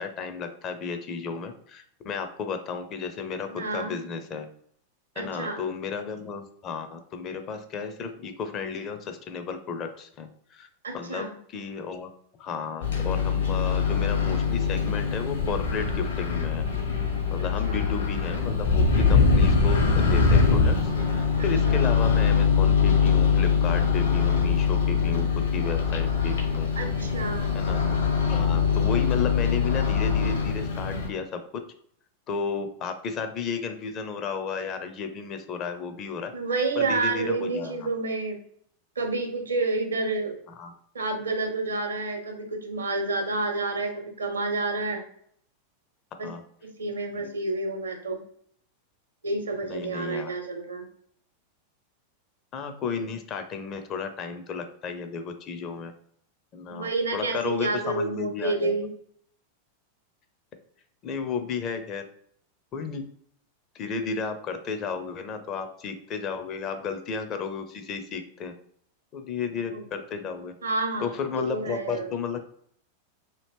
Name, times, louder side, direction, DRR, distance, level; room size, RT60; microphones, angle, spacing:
voice 1, 0.0-4.5 5.2-10.7 10.9-12.1 12.4-16.6 17.3-25.3 25.5-26.7 27.5-27.8 28.3-31.4 32.3-36.3 36.8-37.9 40.6-40.7 46.2-46.4 47.1-47.4 49.6-50.3 52.5-55.9 56.5-58.8 61.0-62.0 62.7-63.0 63.7-68.5 69.1-70.5 71.0-72.4, left 5 dB, 35° left, 7 dB, 0.5 m, -33 dB
voice 2, 3.5-4.0 5.2-5.6 10.8-11.3 17.4-17.8 21.6-21.7 26.8-27.5 36.3-38.4 39.0-40.4 40.9-45.0 46.2-46.3 46.8-48.2 49.2-50.9 56.7-58.9 69.7-69.8 70.6-71.1 71.5-72.1, right 3 dB, 75° right, 4 dB, 0.7 m, -29 dB
Microwave oven, 12.8-31.1, left 5 dB, 70° left, 1.0 m, -23 dB
2.8 x 2.5 x 3.3 m, 0.64 s
figure-of-eight pair, 90°, 0 cm